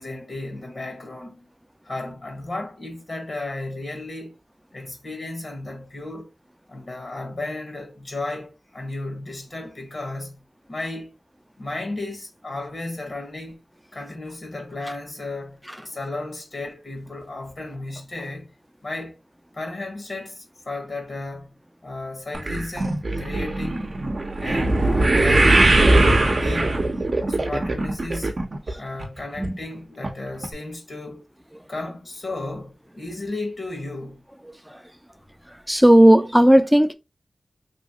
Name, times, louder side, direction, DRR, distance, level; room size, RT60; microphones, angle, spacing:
voice 1, 0.0-1.5 1.8-4.3 4.7-6.3 6.7-11.1 11.6-13.6 13.9-18.5 18.8-19.2 19.5-21.5 21.8-23.9 24.4-26.8 27.3-28.3 28.8-31.2 31.7-34.2, left 2 dB, 60° left, 1.1 m, -34 dB
sound 1, 22.3-28.7 29.0-29.5 30.0-30.1 30.4-30.5, right 2 dB, 55° right, 0.7 m, -20 dB
voice 2, 35.7-36.9, right 1 dB, 5° right, 0.5 m, -14 dB
3.1 x 2.8 x 2.7 m
cardioid pair, 45°, 0 cm